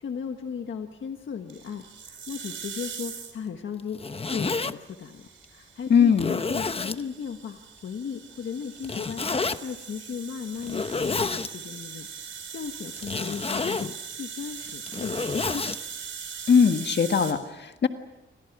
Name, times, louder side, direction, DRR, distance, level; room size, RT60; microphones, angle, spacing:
voice 1, 0.0-4.0 4.3-15.8, left 7 dB, 75° left, 5 dB, 1.5 m, -36 dB
sound 1, 1.5-3.5 4.5-17.3, right 6 dB, 80° right, 4.7 m, -41 dB
Zipper (clothing), 3.8-4.7 5.4-5.5 6.1-7.0 8.8-9.6 10.6-11.5 13.0-13.9 14.7-15.8, left 4 dB, 30° left, 1.0 m, -29 dB
voice 2, 5.9-6.4 16.5-17.9, left 6 dB, 60° left, 7 dB, 1.6 m, -20 dB
29.5 x 25.5 x 6.1 m, 0.99 s
wide cardioid pair, 120°, 20 cm